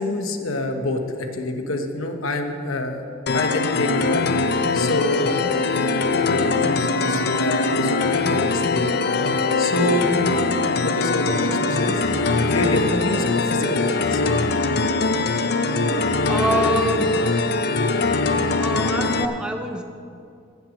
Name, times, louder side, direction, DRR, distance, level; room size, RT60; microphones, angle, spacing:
voice 1, 0.0-3.0 3.3-4.3 4.7-5.3 5.9-9.0 9.6-10.0 10.8-12.0 12.5-14.2, left 2 dB, 85° left, 5 dB, 1.1 m, -26 dB
sound 1, 3.3-19.3, left 3 dB, 50° left, 0.5 m, -22 dB
voice 2, 9.9-10.3 16.3-17.2 18.5-19.8, right 1 dB, 5° right, 5 dB, 0.6 m, -26 dB
16.5 x 6.1 x 6.4 m, 2.4 s
head